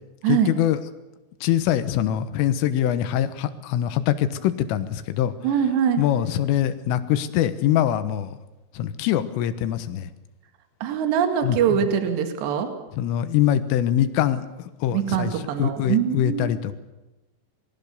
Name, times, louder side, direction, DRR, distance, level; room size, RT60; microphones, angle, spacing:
voice 1, 0.3-0.8 1.4-5.3 6.0-8.4 8.8-10.1 11.4-11.9 12.9-14.5 14.8-16.7, left 11 dB, 85° left, 12 dB, 3.8 m, -23 dB
voice 2, 5.4-6.0 10.8-12.7 14.9-16.5, right 8 dB, 65° right, 7 dB, 4.0 m, -23 dB
27.0 x 21.0 x 6.9 m, 1.1 s
omnidirectional pair, 5.7 m